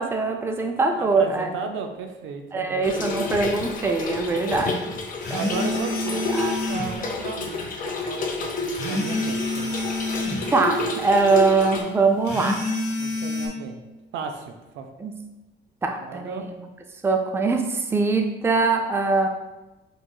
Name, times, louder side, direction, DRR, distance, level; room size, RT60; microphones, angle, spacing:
voice 1, 0.0-1.5 2.5-4.8 5.3-5.5 6.3-6.6 10.5-12.6 15.0-15.2 15.8-16.5 17.0-19.3, right 3 dB, 10° right, 4 dB, 0.4 m, -22 dB
voice 2, 0.9-3.3 4.3-4.7 5.3-9.7 13.0-13.8 14.1-14.9 16.0-16.5, right 5 dB, 75° right, 5 dB, 0.5 m, -35 dB
Trickle dribble / Fill (with liquid), 2.8-11.8, left 3 dB, 45° left, 0.5 m, -30 dB
sound 1, 3.3-3.5 5.2-7.0 8.7-10.5 12.3-13.5, left 1 dB, 60° left, 1.0 m, -28 dB
4.5 x 2.7 x 2.2 m, 1.1 s
cardioid pair, 90°, 20 cm